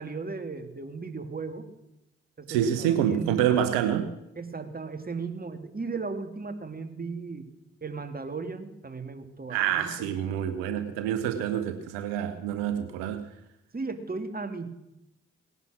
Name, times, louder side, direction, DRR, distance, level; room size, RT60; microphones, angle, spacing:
voice 1, 0.0-1.7 2.4-3.4 4.4-7.5 7.8-10.1 13.7-14.7, right 4 dB, 30° right, 7 dB, 2.4 m, -36 dB
voice 2, 2.5-4.1 9.5-13.3, right 10 dB, 80° right, 9 dB, 1.0 m, -27 dB
18.0 x 11.0 x 6.3 m, 0.87 s
hypercardioid pair, 40°, 32 cm